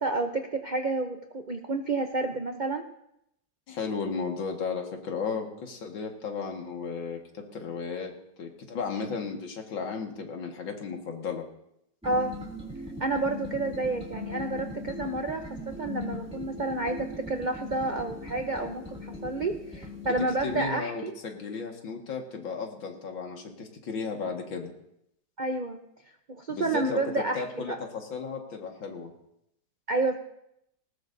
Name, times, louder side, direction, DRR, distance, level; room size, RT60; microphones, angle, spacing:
voice 1, 0.0-2.8 12.0-12.3 13.0-21.1 25.4-25.8 26.3-27.8 29.9-30.2, right 2 dB, 65° right, 5 dB, 0.4 m, -30 dB
voice 2, 3.7-8.1 8.4-11.4 20.4-24.7 26.5-29.1, left 5 dB, 90° left, 2 dB, 2.5 m, -34 dB
sound 1, 12.0-20.7, left 2 dB, 5° right, 2.3 m, -39 dB
19.0 x 19.0 x 2.7 m, 0.79 s
omnidirectional pair, 2.0 m